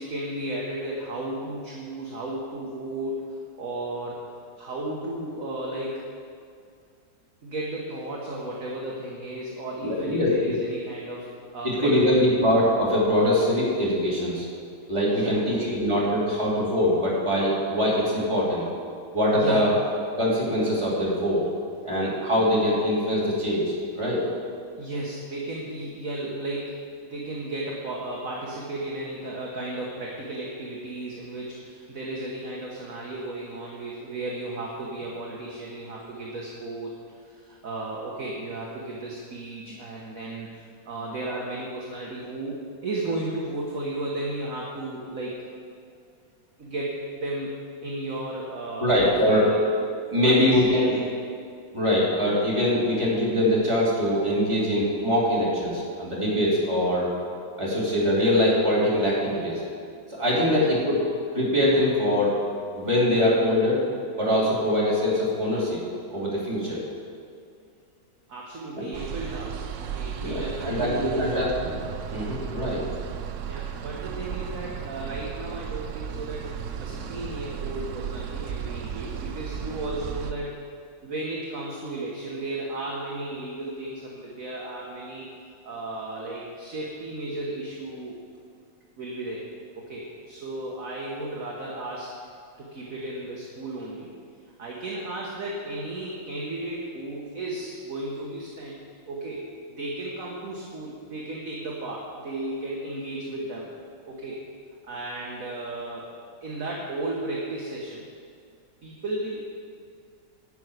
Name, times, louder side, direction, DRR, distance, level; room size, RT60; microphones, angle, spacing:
voice 1, 0.0-4.2 4.6-6.1 7.4-12.3 15.0-15.8 19.3-19.7 24.8-26.7 27.0-45.4 46.6-47.5 47.8-49.6 50.2-51.2 60.3-60.6 68.3-71.5 73.4-80.6 81.0-85.3 85.6-88.2 89.0-89.5 89.8-92.3 92.6-94.1 94.6-98.8 99.1-99.4 99.8-103.7 104.0-104.4 104.9-106.1 106.4-108.1 108.8-109.4, right 2 dB, 50° right, -3 dB, 1.5 m, -34 dB
voice 2, 9.8-10.5 11.6-14.4 14.9-18.7 19.1-19.7 20.2-21.4 21.8-24.2 48.8-49.4 50.1-50.8 51.7-57.1 57.6-59.6 60.1-61.0 61.3-62.3 62.7-63.8 64.2-65.8 66.1-66.8 68.7-68.8 70.2-71.8 72.1-72.8, left 1 dB, 15° right, -7 dB, 3.2 m, -23 dB
sound 1, 68.9-80.3, right 8 dB, 85° right, 0.6 m, -35 dB
11.0 x 6.1 x 8.1 m, 2.3 s
omnidirectional pair, 2.0 m